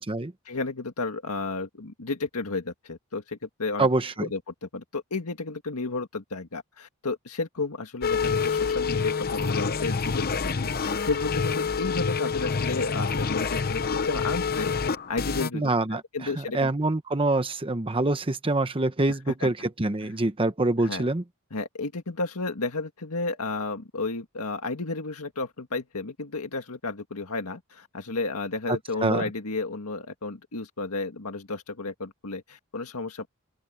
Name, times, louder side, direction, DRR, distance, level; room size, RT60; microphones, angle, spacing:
voice 1, 0.5-3.9 4.2-14.7 15.1-15.7 16.1-16.7 19.1-19.5 20.0-20.2 20.8-21.1 21.5-33.3, left 3 dB, 80° left, 1.8 m, -32 dB
voice 2, 3.8-4.3 15.5-21.2 28.7-29.3, right 2 dB, 25° right, 0.9 m, -25 dB
sound 1, 8.0-15.5, left 5 dB, 45° left, 0.8 m, -27 dB
open air
head